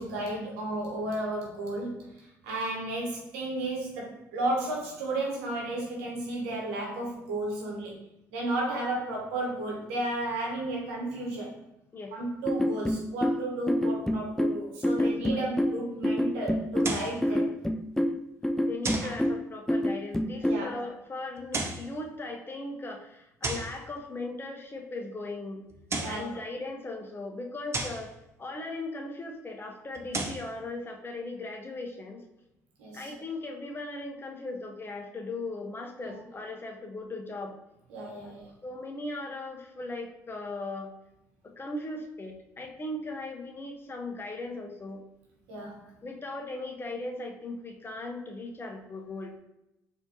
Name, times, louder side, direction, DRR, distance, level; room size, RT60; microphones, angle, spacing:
voice 1, 0.0-8.0 8.3-11.5 12.1-17.4 19.0-19.1 20.4-20.8 26.0-26.3 32.8-33.1 36.0-36.2 37.9-38.4 45.5-45.8, right 1 dB, 80° right, -2 dB, 1.0 m, -33 dB
sound 1, 12.4-20.7, left 1 dB, 5° left, 0.3 m, -27 dB
voice 2, 14.9-15.4 17.3-17.4 18.7-25.6 26.0-28.1 28.4-32.2 32.9-37.6 38.2-38.3 38.6-40.9 41.4-45.0 45.8-49.4, left 2 dB, 30° left, 2 dB, 0.8 m, -38 dB
sound 2, 16.8-17.2 18.8-19.2 21.4-21.9 23.4-23.8 25.7-26.3 27.7-28.1 29.9-30.5, right 3 dB, 35° right, 0.6 m, -33 dB
4.2 x 2.8 x 2.8 m, 0.87 s
hypercardioid pair, 55°, 8 cm